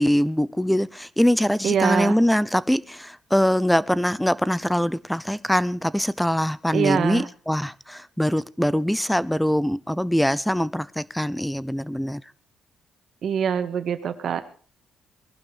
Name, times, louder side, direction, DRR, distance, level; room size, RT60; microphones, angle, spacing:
voice 1, 0.0-12.2, equal, 5° left, 0.6 m, -23 dB
voice 2, 1.6-2.2 6.7-7.3 13.2-14.4, right 8 dB, 60° right, 1.7 m, -24 dB
20.0 x 12.0 x 5.0 m
cardioid pair, 90°, 0 cm